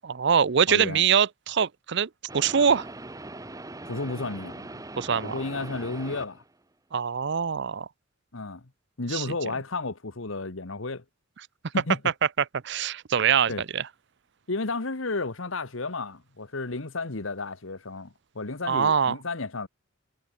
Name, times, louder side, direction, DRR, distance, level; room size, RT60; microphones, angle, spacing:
voice 1, 0.0-2.9 5.0-5.4 6.9-7.9 9.1-9.2 12.4-13.8 18.7-19.1, right 7 dB, 55° right, 0.6 m, -24 dB
voice 2, 0.7-1.0 3.8-4.8 5.2-6.4 8.3-8.6 9.0-11.0 11.7-12.0 13.5-13.6 14.5-19.7, left 3 dB, 70° left, 1.5 m, -32 dB
sound 1, 2.3-6.5, right 2 dB, 15° right, 1.2 m, -41 dB
head